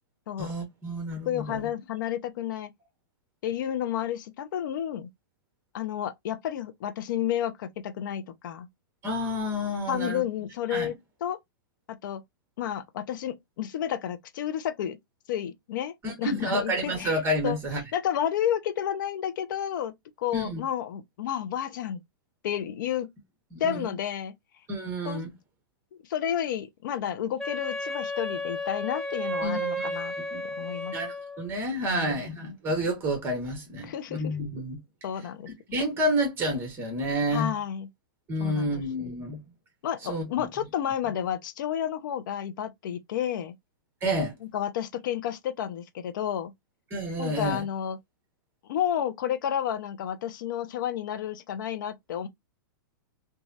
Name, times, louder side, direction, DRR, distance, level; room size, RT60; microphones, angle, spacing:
voice 1, 0.4-1.7 9.0-10.2 10.7-10.9 16.0-17.8 20.3-20.6 23.5-23.9 24.7-25.3 29.4-29.9 30.3-30.5 30.9-34.8 35.7-37.5 38.3-39.4 40.1-40.5 44.0-44.3 46.9-47.6, equal, 20° right, 1.5 m, -29 dB
voice 2, 1.3-2.7 3.4-5.1 5.7-8.7 9.9-11.0 11.2-11.4 11.9-12.2 12.6-15.0 15.3-17.6 17.9-22.0 22.4-23.1 23.6-24.3 25.0-25.2 26.0-30.1 30.5-31.0 31.9-32.6 33.9-34.3 35.0-35.5 37.3-37.9 38.4-39.1 39.8-43.5 44.5-46.5 47.2-48.0 48.7-52.3, left 10 dB, 65° left, 0.5 m, -31 dB
Wind instrument woodwind instrument, 27.4-31.5, equal, 5° left, 0.7 m, -33 dB
3.0 x 2.3 x 2.7 m
hypercardioid pair, 135°, 11 cm